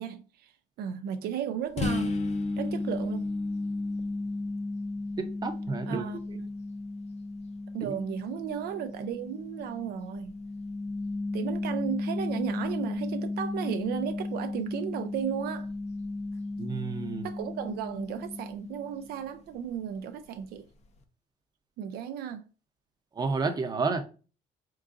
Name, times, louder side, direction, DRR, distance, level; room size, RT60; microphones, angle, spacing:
voice 1, 0.0-2.2 2.6-3.2 5.9-6.5 7.7-10.3 11.3-15.7 17.2-20.6 21.8-22.5, right 9 dB, 70° right, 0.4 m, -35 dB
sound 1, 1.8-19.3, left 2 dB, 40° left, 0.6 m, -34 dB
voice 2, 5.2-6.1 7.8-7.9 16.6-17.3 23.2-24.0, right 4 dB, 25° right, 0.7 m, -30 dB
3.7 x 3.7 x 2.5 m
cardioid pair, 110°, 17 cm